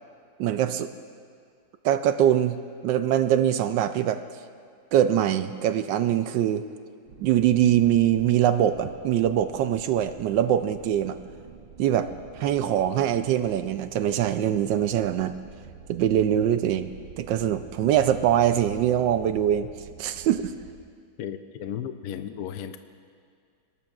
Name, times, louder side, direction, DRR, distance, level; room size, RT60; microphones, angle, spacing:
voice 1, 0.4-0.9 1.8-2.6 2.8-4.2 4.9-6.6 7.2-11.2 11.8-15.4 15.9-16.9 17.2-19.7 20.0-20.5, right 10 dB, 75° right, 10 dB, 1.2 m, -23 dB
sound 1, 7.1-20.8, right 7 dB, 90° right, 1.7 m, -47 dB
voice 2, 21.2-22.8, left 9 dB, 75° left, 9 dB, 0.9 m, -35 dB
21.5 x 18.5 x 2.4 m, 2.2 s
omnidirectional pair, 2.2 m